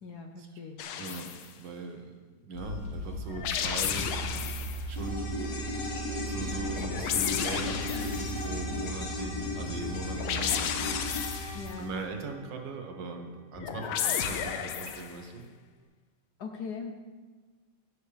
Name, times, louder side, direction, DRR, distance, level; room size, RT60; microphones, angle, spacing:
voice 1, 0.0-0.9 11.5-11.9 16.4-16.9, left 5 dB, 65° left, 4 dB, 1.1 m, -40 dB
sound 1, 0.8-1.5 3.3-4.8 6.7-8.4 10.1-11.7 13.5-15.2, left 8 dB, 90° left, 1.6 m, -32 dB
voice 2, 1.0-1.3 1.6-4.1 4.6-15.4, right 3 dB, 65° right, 3 dB, 1.6 m, -40 dB
sound 2, 2.5-11.7, right 1 dB, 30° left, 1.7 m, -38 dB
sound 3, 5.0-13.4 13.7-13.8, left 3 dB, 50° left, 1.5 m, -37 dB
15.5 x 6.8 x 3.3 m, 1.4 s
omnidirectional pair, 2.2 m